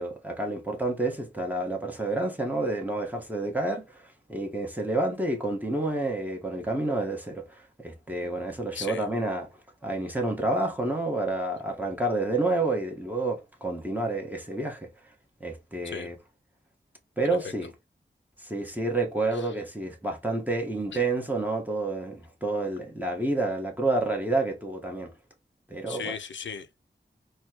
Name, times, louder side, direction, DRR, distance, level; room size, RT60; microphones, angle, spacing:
voice 1, 0.0-9.5 9.8-14.9 15.4-16.2 17.2-17.7 18.4-25.1 25.7-26.2, right 2 dB, 10° right, 1.2 m, -29 dB
voice 2, 8.7-9.0 15.8-16.1 17.4-17.5 19.3-19.5 20.9-21.0 25.9-26.8, left 6 dB, 80° left, 0.4 m, -37 dB
4.3 x 2.2 x 2.8 m
wide cardioid pair, 50°, 19 cm